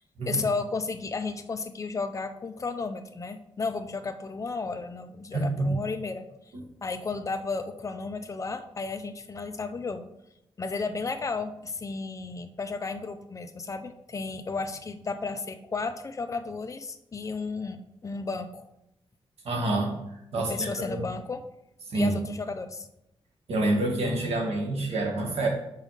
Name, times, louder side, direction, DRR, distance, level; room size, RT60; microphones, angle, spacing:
voice 1, 0.3-6.2 6.8-10.1 10.6-18.7 20.4-21.4 21.9-22.9, left 4 dB, 30° left, 7 dB, 0.6 m, -33 dB
voice 2, 5.3-5.7 19.4-20.0 20.3-21.0 21.9-22.2 23.5-25.5, right 2 dB, 80° right, 0 dB, 2.0 m, -27 dB
5.6 x 5.1 x 6.6 m, 0.84 s
wide cardioid pair, 145°, 10 cm